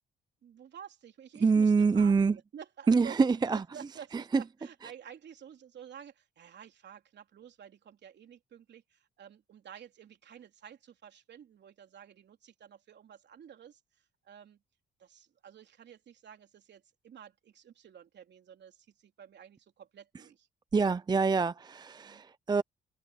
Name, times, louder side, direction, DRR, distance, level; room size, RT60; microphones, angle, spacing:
voice 1, 0.4-3.2 3.7-14.6 15.0-20.5 22.0-22.2, right 8 dB, 60° right, 3.5 m, -51 dB
voice 2, 1.4-2.4 2.9-3.6 4.1-4.4 20.7-22.6, right 4 dB, 20° right, 0.5 m, -25 dB
cardioid pair, 90°, 20 cm